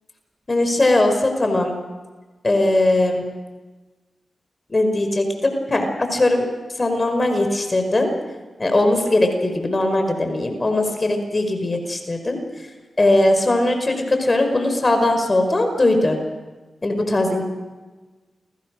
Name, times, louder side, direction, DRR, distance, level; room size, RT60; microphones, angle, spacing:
voice 1, 0.5-1.7 2.4-3.2 4.7-5.9 6.1-6.5 6.8-8.1 8.6-12.4 13.0-16.2 16.8-17.4, left 2 dB, 40° left, 5 dB, 5.3 m, -19 dB
29.5 x 22.0 x 6.4 m, 1.3 s
supercardioid pair, 40°, 0 cm